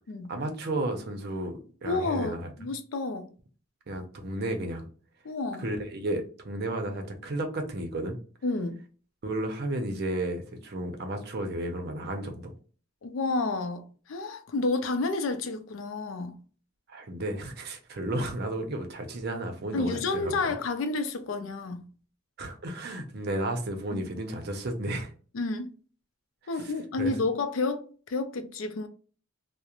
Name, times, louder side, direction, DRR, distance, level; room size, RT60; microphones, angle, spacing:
voice 1, 0.3-2.5 3.9-4.9 5.6-8.2 9.2-12.5 16.9-20.4 22.4-25.1 26.6-26.7 27.0-27.1, right 1 dB, 55° right, 0.6 m, -33 dB
voice 2, 1.8-3.3 5.2-5.6 8.4-8.7 13.0-16.4 19.7-21.8 23.9-24.0 25.3-25.7 26.5-28.9, left 3 dB, 75° left, 0.4 m, -30 dB
2.4 x 2.1 x 2.9 m
head